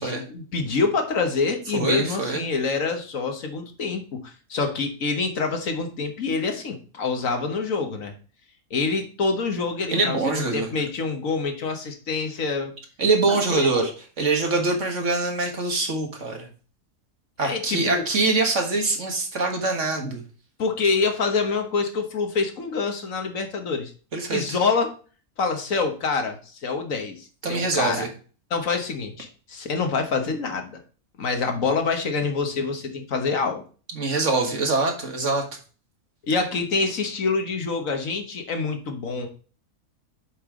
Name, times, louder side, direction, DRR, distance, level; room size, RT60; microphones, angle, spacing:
voice 1, 0.0-8.1 8.7-12.7 13.3-13.9 17.4-18.1 20.6-23.9 24.3-24.9 25.4-28.0 28.5-30.8 31.2-33.6 36.3-39.3, left 4 dB, 65° left, 5 dB, 1.6 m, -26 dB
voice 2, 1.7-2.4 9.9-10.7 13.0-13.9 14.2-16.5 17.4-20.2 24.1-24.6 27.4-28.1 33.9-35.4, right 3 dB, 55° right, 2 dB, 1.9 m, -24 dB
7.9 x 5.5 x 3.7 m, 0.38 s
omnidirectional pair, 1.6 m